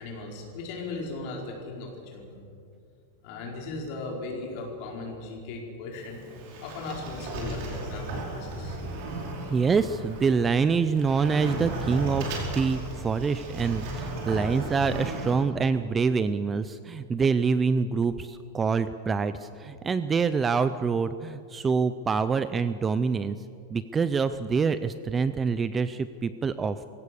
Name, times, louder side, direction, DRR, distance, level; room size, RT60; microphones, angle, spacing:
voice 1, 0.0-2.3 3.2-6.2 6.6-8.8, left 3 dB, 40° left, 0 dB, 4.7 m, -37 dB
Sliding door, 5.9-15.3, right 2 dB, 45° right, 4.8 m, -35 dB
voice 2, 9.5-23.4 23.7-26.8, right 5 dB, 15° right, 13 dB, 0.4 m, -26 dB
23.5 x 16.5 x 7.0 m, 2.4 s
supercardioid pair, 170°, 0 cm